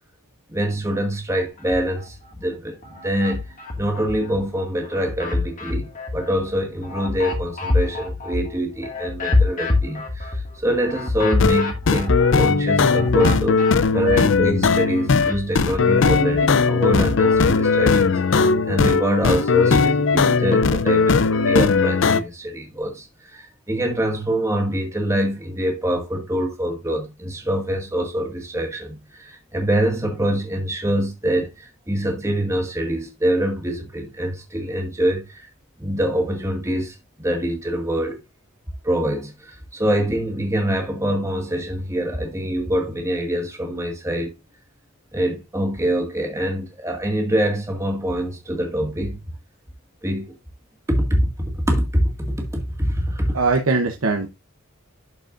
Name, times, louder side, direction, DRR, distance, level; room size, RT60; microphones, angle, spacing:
voice 1, 0.5-13.6 13.9-35.5 35.8-38.2 38.8-44.3 45.1-49.3 50.0-50.4 50.9-53.4, equal, 15° right, 2.0 m, -25 dB
sound 1, 1.6-2.4 2.8-4.4 4.8-14.5 14.8-17.4, left 3 dB, 40° left, 2.0 m, -27 dB
sound 2, 11.2-22.2, left 4 dB, 60° left, 0.5 m, -18 dB
voice 2, 53.3-54.3, right 3 dB, 75° right, 0.9 m, -20 dB
12.0 x 5.1 x 2.6 m
head